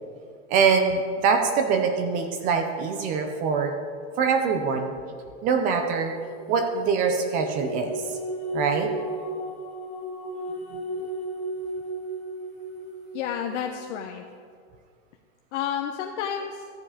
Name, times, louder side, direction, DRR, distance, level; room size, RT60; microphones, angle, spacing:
voice 1, 0.5-3.7 4.2-4.9 5.4-6.1 6.5-8.0 8.5-8.9 10.7-10.8, right 5 dB, 20° right, 6 dB, 0.4 m, -23 dB
sound 1, 6.0-13.6, right 1 dB, 20° left, 1.0 m, -35 dB
voice 2, 13.1-14.3 15.5-16.6, left 8 dB, 65° left, 3 dB, 0.8 m, -30 dB
13.5 x 7.4 x 4.9 m, 2.2 s
supercardioid pair, 165°, 38 cm